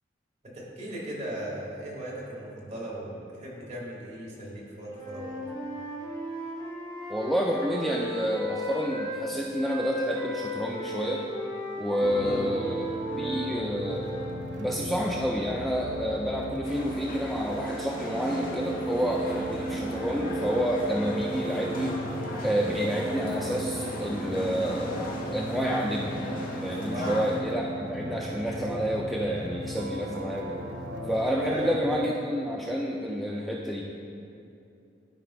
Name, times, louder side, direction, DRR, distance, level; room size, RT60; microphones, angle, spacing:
voice 1, 0.4-5.4 12.2-12.4 26.9-27.1 31.4-32.1, right 1 dB, 35° right, -5 dB, 1.6 m, -37 dB
Wind instrument woodwind instrument, 4.8-9.2 9.5-14.3, left 1 dB, 20° left, 1.2 m, -36 dB
voice 2, 7.1-11.3 11.8-14.1 14.6-22.0 22.4-25.0 25.3-26.1 26.6-30.6 31.1-33.9, equal, ahead, -3 dB, 0.3 m, -29 dB
sound 1, 12.0-31.7, right 1 dB, 80° right, 0.8 m, -36 dB
sound 2, 16.6-27.4, left 1 dB, 45° left, 1.0 m, -37 dB
12.0 x 5.0 x 2.2 m, 2.6 s
head